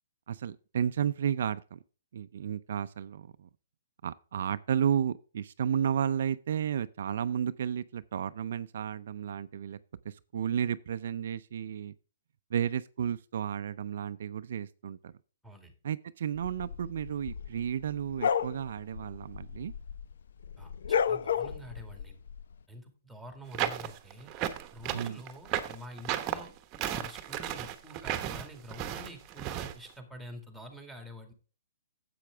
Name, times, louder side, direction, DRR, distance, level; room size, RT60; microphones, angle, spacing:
voice 1, 0.3-1.8 2.1-3.5 4.0-9.8 10.0-11.9 12.5-15.1 15.8-19.7 24.9-25.2, right 8 dB, 65° right, 0.4 m, -32 dB
sound 1, 16.4-20.1 20.4-22.4, left 7 dB, 70° left, 0.5 m, -32 dB
voice 2, 20.6-22.2 22.7-24.3 24.7-26.5 26.9-31.3, equal, ahead, 2.1 m, -47 dB
sound 2, 23.5-29.7, right 11 dB, 30° right, 1.0 m, -34 dB
10.0 x 7.8 x 3.5 m
hypercardioid pair, 145°, 0 cm